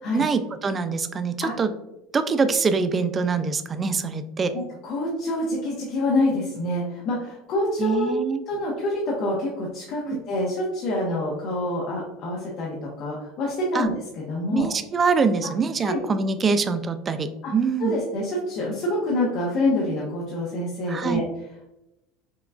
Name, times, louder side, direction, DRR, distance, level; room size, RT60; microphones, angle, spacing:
voice 1, 0.1-1.7 2.1-4.5 7.8-8.4 10.1-10.2 13.7-13.9 14.5-17.9 20.9-21.2, right 5 dB, 25° right, 10 dB, 0.3 m, -24 dB
voice 2, 4.5-8.1 8.5-13.9 14.3-14.7 15.8-16.0 17.4-17.5 17.8-21.2, left 1 dB, 55° left, -4 dB, 0.9 m, -26 dB
5.7 x 2.3 x 2.3 m, 0.92 s
supercardioid pair, 115°, 0 cm